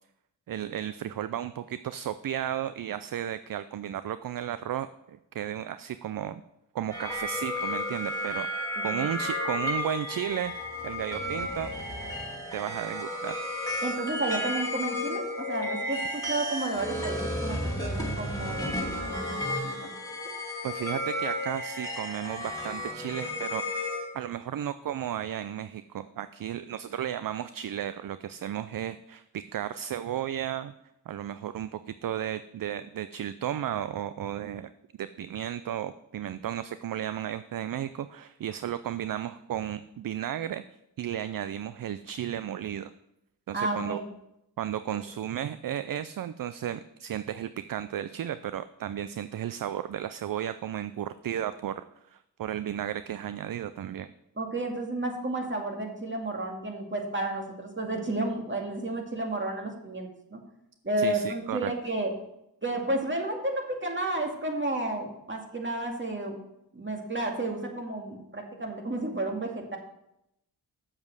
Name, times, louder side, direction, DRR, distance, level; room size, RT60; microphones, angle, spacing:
voice 1, 0.5-6.4 6.7-10.5 10.8-11.7 12.5-13.4 20.6-23.9 24.1-30.7 31.1-34.7 35.0-40.6 41.0-42.9 43.5-44.0 44.6-51.8 52.1-54.1 61.0-61.7, right 10 dB, 55° right, 13 dB, 0.5 m, -34 dB
sound 1, 6.9-24.1, left 1 dB, 10° left, 3.1 m, -33 dB
voice 2, 8.8-9.1 13.8-19.9 43.5-44.1 54.4-60.4 60.8-62.1 62.6-66.4 66.7-69.8, right 2 dB, 25° right, 1 dB, 2.3 m, -32 dB
7.4 x 7.3 x 6.4 m, 0.84 s
cardioid pair, 50°, 41 cm